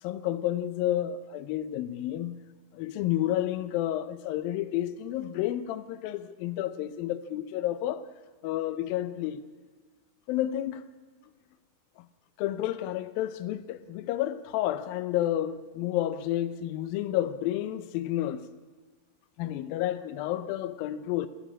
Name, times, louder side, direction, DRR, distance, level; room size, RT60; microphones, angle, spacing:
voice 1, 0.0-2.4 2.7-8.0 8.4-9.4 10.3-10.9 12.0-12.1 12.4-18.5 19.4-21.3, left 13 dB, 75° left, 2.2 m, -30 dB
27.0 x 14.0 x 8.5 m
omnidirectional pair, 4.9 m